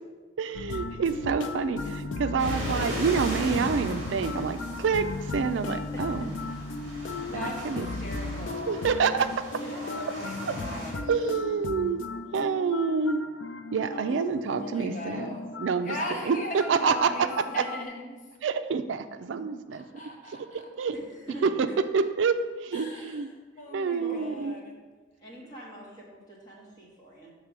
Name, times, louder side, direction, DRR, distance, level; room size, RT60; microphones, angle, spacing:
voice 1, 0.4-6.2 7.3-7.9 8.7-9.4 10.5-10.6 11.1-12.0 12.3-13.2 13.7-16.0 16.2-17.3 17.6-17.7 18.4-19.8 20.5-20.9 21.4-21.5 21.9-23.3 23.7-24.6, right 5 dB, 80° right, 10 dB, 0.4 m, -27 dB
sound 1, 0.5-17.8, left 3 dB, 80° left, 0.5 m, -36 dB
sound 2, 2.4-10.9, equal, 40° right, 2.2 m, -38 dB
voice 2, 5.9-6.3 9.5-10.2 13.9-14.3 20.9-21.8 24.0-24.5 25.2-27.3, right 1 dB, 20° left, -5 dB, 1.7 m, -44 dB
voice 3, 7.3-8.8 9.8-11.1 14.6-15.5 15.8-18.2 19.7-20.7 22.7-23.3 23.6-24.8, left 1 dB, 40° left, 0 dB, 0.9 m, -38 dB
6.5 x 3.7 x 6.0 m, 1.3 s
head